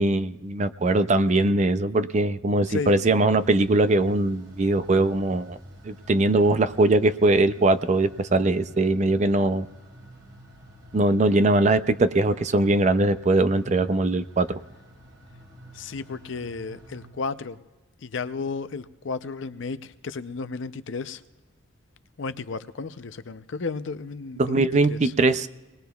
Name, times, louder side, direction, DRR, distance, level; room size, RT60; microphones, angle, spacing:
voice 1, 0.0-5.6 5.8-9.7 10.9-14.6 24.4-25.5, right 2 dB, 35° right, 12 dB, 0.4 m, -21 dB
sound 1, 3.3-17.1, equal, 75° right, 4.4 m, -49 dB
voice 2, 15.7-17.6 18.0-21.2 22.2-25.1, left 4 dB, 65° left, 12 dB, 0.5 m, -33 dB
24.0 x 20.0 x 2.3 m, 1.1 s
head